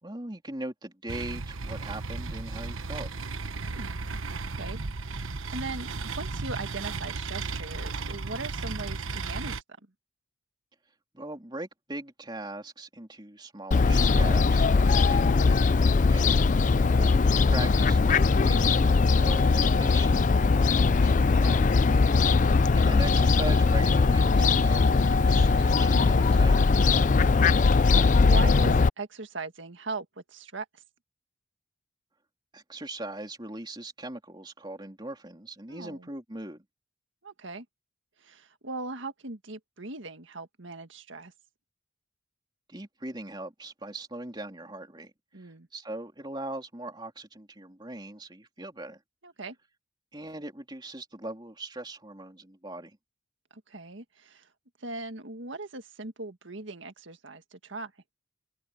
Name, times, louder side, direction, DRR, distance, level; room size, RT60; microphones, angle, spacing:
voice 1, 0.0-3.1 11.1-16.5 16.8-17.0 17.3-21.7 22.7-26.6 32.5-36.6 42.7-49.0 50.1-53.0, right 1 dB, 20° right, 3.2 m, -40 dB
sound 1, 1.1-9.6, right 3 dB, 85° right, 1.2 m, -35 dB
voice 2, 5.0-5.9 6.1-9.6 16.8-17.1 28.3-30.8 35.7-36.1 37.2-37.7 38.2-41.3 45.3-45.7 49.2-49.6 53.5-54.5 54.8-57.9, right 3 dB, 65° right, 1.7 m, -39 dB
Fowl, 13.7-28.9, left 4 dB, 40° left, 0.4 m, -21 dB
open air
head